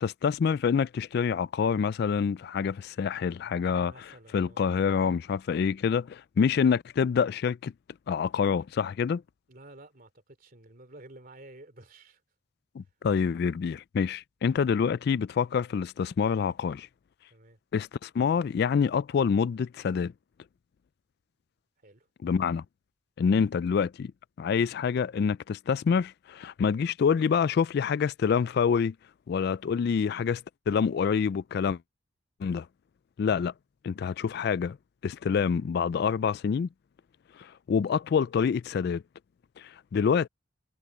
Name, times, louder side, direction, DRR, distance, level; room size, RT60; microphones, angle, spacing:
voice 1, 0.0-3.9 4.3-7.7 8.1-9.2 12.8-16.9 17.7-20.1 22.2-22.6 23.2-24.1 24.4-28.9 29.3-31.8 32.4-32.7 33.2-33.5 33.8-34.8 35.0-36.7 37.4-39.0 39.6-40.3, left 6 dB, 55° left, 0.3 m, -26 dB
voice 2, 3.6-4.6 9.5-12.2 17.3-17.6 21.8-22.1 33.3-33.5, right 2 dB, 45° right, 3.0 m, -51 dB
head